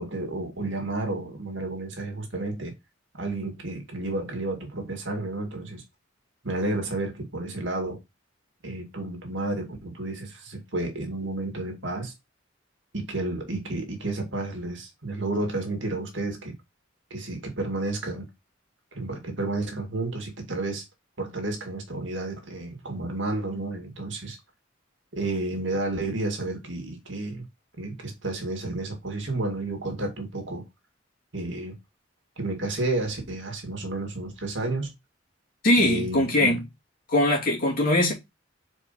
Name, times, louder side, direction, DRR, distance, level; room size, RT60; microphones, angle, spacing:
voice 1, 0.0-2.7 3.1-5.8 6.4-8.0 8.6-12.1 12.9-16.5 17.1-18.3 18.9-20.8 21.2-24.4 25.1-27.5 27.8-30.6 31.3-31.8 32.4-34.9 35.7-36.6, right 2 dB, 70° right, 2.2 m, -31 dB
voice 2, 35.6-36.6 37.1-38.1, left 1 dB, 45° left, 3.1 m, -21 dB
5.3 x 4.7 x 4.2 m
head